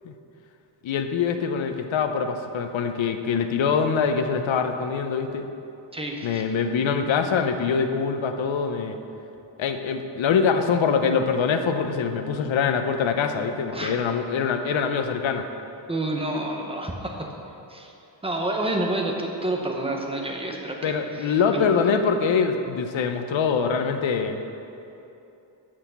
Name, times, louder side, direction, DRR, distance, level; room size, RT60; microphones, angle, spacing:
voice 1, 0.8-5.5 6.2-9.0 9.6-15.4 20.8-24.4, left 6 dB, 85° left, 7 dB, 0.7 m, -24 dB
voice 2, 5.9-6.5 13.7-13.9 15.9-17.3 17.7-17.9 18.2-21.7, right 1 dB, 15° right, 1 dB, 0.7 m, -29 dB
6.4 x 6.1 x 6.9 m, 2.9 s
wide cardioid pair, 160°, 45 cm